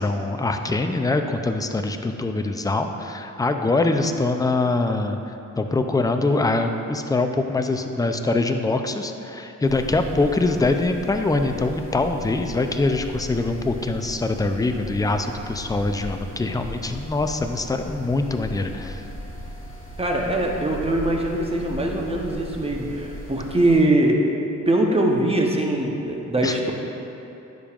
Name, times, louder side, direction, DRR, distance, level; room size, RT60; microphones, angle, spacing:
voice 1, 0.0-19.0 26.4-26.5, left 2 dB, 10° left, 6 dB, 0.4 m, -23 dB
sound 1, 9.7-23.8, left 1 dB, 40° left, 1.3 m, -37 dB
voice 2, 20.0-24.2 24.7-26.7, right 1 dB, 20° right, 0 dB, 0.9 m, -22 dB
9.8 x 5.3 x 2.4 m, 2.9 s
cardioid pair, 70°, 32 cm